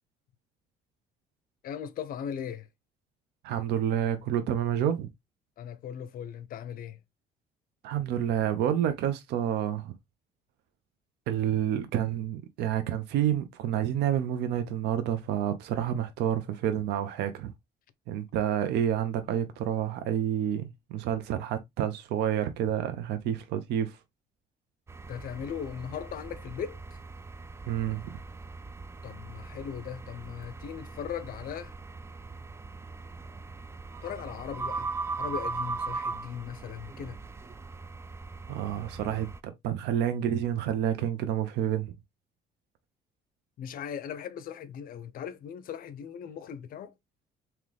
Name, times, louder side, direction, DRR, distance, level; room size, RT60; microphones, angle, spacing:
voice 1, 1.6-2.7 5.6-7.0 25.1-26.8 29.0-31.7 34.0-34.9 35.2-37.2 43.6-46.9, left 8 dB, 60° left, 0.6 m, -38 dB
voice 2, 3.4-5.1 7.8-9.9 11.3-17.5 18.1-24.0 27.7-28.1 38.5-41.9, right 10 dB, 80° right, 0.6 m, -29 dB
sound 1, 24.9-39.4, right 3 dB, 15° right, 0.3 m, -39 dB
3.7 x 2.9 x 3.2 m
cardioid pair, 110°, 17 cm